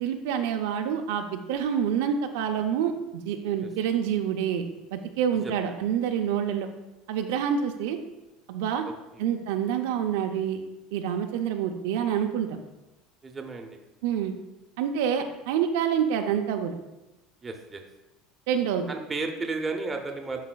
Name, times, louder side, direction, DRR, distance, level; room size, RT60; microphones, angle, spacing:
voice 1, 0.0-4.7 4.9-6.7 7.1-8.0 8.5-8.8 9.2-10.6 10.9-12.6 14.0-14.3 14.8-16.8 18.5-18.9, right 8 dB, 85° right, 5 dB, 0.5 m, -27 dB
voice 2, 8.8-9.2 13.2-13.8 17.4-17.8 18.9-20.5, right 3 dB, 20° right, 4 dB, 0.7 m, -33 dB
10.5 x 4.1 x 2.3 m, 0.99 s
supercardioid pair, 130°, 0 cm